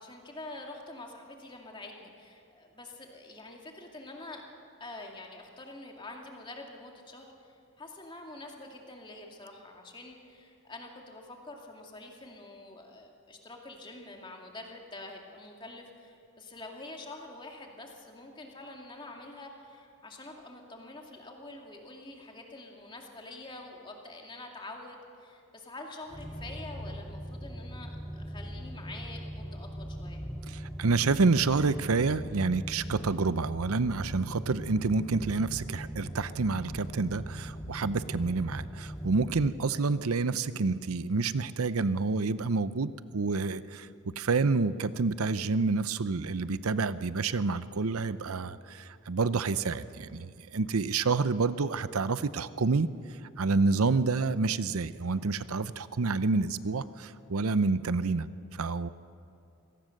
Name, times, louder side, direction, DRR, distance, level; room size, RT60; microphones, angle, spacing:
voice 1, 0.0-4.4 4.8-30.2, left 2 dB, 20° left, 1 dB, 2.3 m, -46 dB
sound 1, 26.1-39.5, equal, 5° left, 1.9 m, -40 dB
voice 2, 30.5-43.9 44.2-52.9 53.4-58.9, right 4 dB, 80° right, 15 dB, 0.7 m, -28 dB
25.0 x 18.0 x 6.5 m, 2.7 s
head